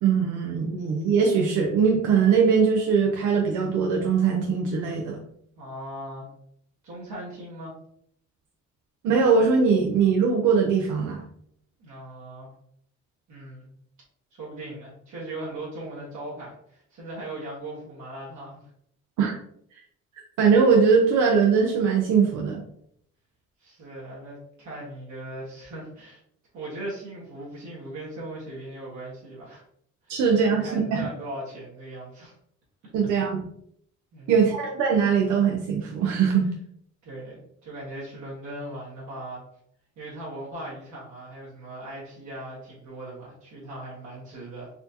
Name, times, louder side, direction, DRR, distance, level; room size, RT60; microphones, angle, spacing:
voice 1, 0.0-5.2 9.0-11.2 19.2-19.3 20.4-22.6 30.1-31.1 32.9-33.4 34.3-36.5, right 6 dB, 90° right, 1 dB, 0.6 m, -21 dB
voice 2, 5.6-6.3 6.8-7.7 11.8-12.5 13.3-13.7 14.3-18.6 23.6-26.2 26.5-29.6 30.0-32.3 34.1-34.3 37.0-39.4 40.0-44.7, right 1 dB, 70° right, -6 dB, 1.4 m, -39 dB
4.2 x 2.6 x 2.8 m, 0.69 s
cardioid pair, 90°, 30 cm